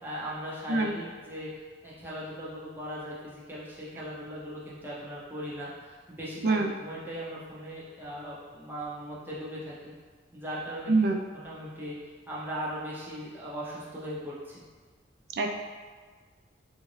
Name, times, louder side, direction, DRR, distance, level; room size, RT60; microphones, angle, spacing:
voice 1, 0.0-1.5 1.8-9.9 10.3-12.0 12.3-14.6, equal, 10° right, -7 dB, 0.6 m, -39 dB
voice 2, 0.7-0.9 6.4-6.7 10.9-11.2 15.4-15.5, right 3 dB, 55° right, 3 dB, 0.3 m, -24 dB
3.7 x 2.5 x 3.1 m, 1.5 s
head